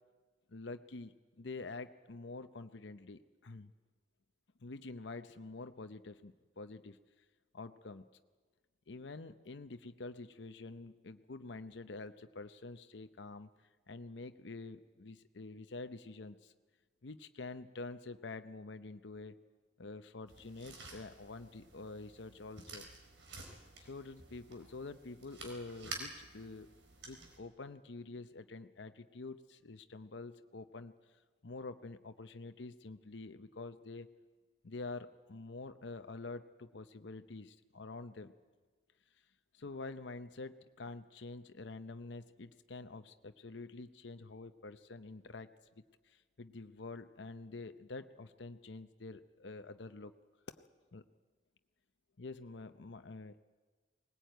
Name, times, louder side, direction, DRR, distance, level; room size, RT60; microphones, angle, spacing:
voice 1, 0.5-3.7 4.6-7.0 7.5-8.1 8.9-13.5 13.9-16.5 17.0-19.4 19.8-22.9 23.8-26.7 27.0-30.9 31.4-34.1 34.6-38.3 39.5-45.5 45.8-50.1 50.6-51.0 52.2-53.4, left 3 dB, 75° left, 9 dB, 0.8 m, -47 dB
sound 1, 20.3-27.4, right 3 dB, 90° right, 4.4 m, -51 dB
19.5 x 19.5 x 9.2 m, 1.3 s
head